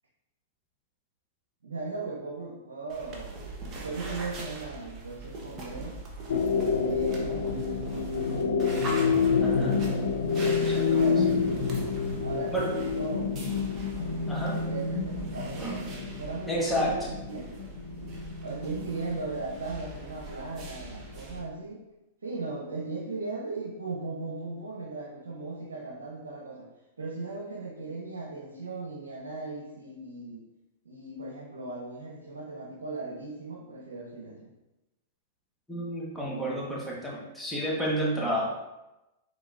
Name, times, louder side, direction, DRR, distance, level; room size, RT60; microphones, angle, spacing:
voice 1, 1.6-3.5 3.8-6.0 6.8-7.8 10.9-11.3 12.2-13.4 13.9-17.7 18.4-21.8 22.2-26.7 27.0-30.4 30.8-34.5, right 3 dB, 90° right, -2 dB, 0.7 m, -38 dB
sound 1, 2.9-21.4, right 2 dB, 35° right, 1.0 m, -41 dB
sound 2, 6.3-20.0 20.3-20.4, left 5 dB, 80° left, 0.5 m, -28 dB
voice 2, 9.4-9.8 10.4-11.1 12.5-12.7 14.3-14.6 15.6-15.9 16.5-17.1 35.7-38.5, equal, 5° left, -5 dB, 1.3 m, -31 dB
4.9 x 3.7 x 2.5 m, 1.0 s
hypercardioid pair, 115°, 0 cm